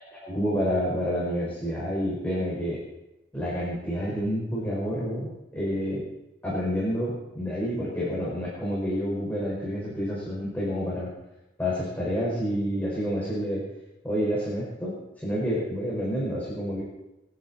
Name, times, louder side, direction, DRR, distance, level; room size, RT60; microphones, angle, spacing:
voice 1, 0.2-2.8 3.3-6.1 6.4-11.1 11.6-13.6 14.0-14.9 15.2-16.8, equal, 10° left, -6 dB, 5.5 m, -28 dB
27.5 x 10.5 x 4.4 m, 0.97 s
head